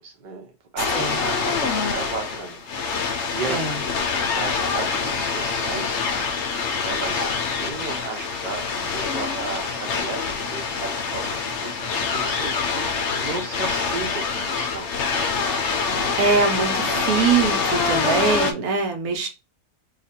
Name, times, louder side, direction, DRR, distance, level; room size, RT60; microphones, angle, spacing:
voice 1, 0.0-2.6 3.0-6.0 6.8-7.3 7.6-15.0 15.8-16.1 16.8-17.0, right 4 dB, 40° right, 0.8 m, -35 dB
sound 1, 0.8-18.5, left 5 dB, 60° left, 0.8 m, -25 dB
voice 2, 0.9-1.2 3.5-3.8 16.2-19.3, right 5 dB, 85° right, 1.2 m, -22 dB
2.8 x 2.5 x 4.3 m
omnidirectional pair, 1.6 m